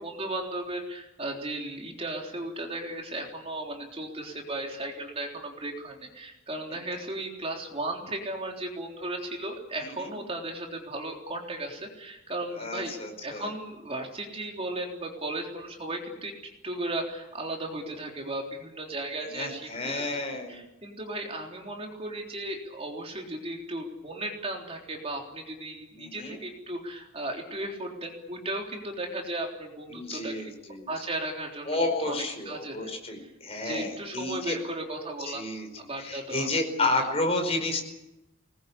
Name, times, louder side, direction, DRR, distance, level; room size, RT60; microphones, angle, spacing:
voice 1, 0.0-16.3 16.6-20.2 20.5-30.3 30.9-32.1 32.5-32.9 33.2-33.3 33.6-35.4 35.8-36.5 36.8-37.0, right 1 dB, 30° right, 1 dB, 3.7 m, -35 dB
voice 2, 12.6-13.5 19.2-20.6 26.0-26.4 29.9-30.9 31.6-34.6 35.3-35.7 36.0-37.9, left 2 dB, 30° left, 4 dB, 5.0 m, -31 dB
24.5 x 20.5 x 8.5 m, 0.93 s
head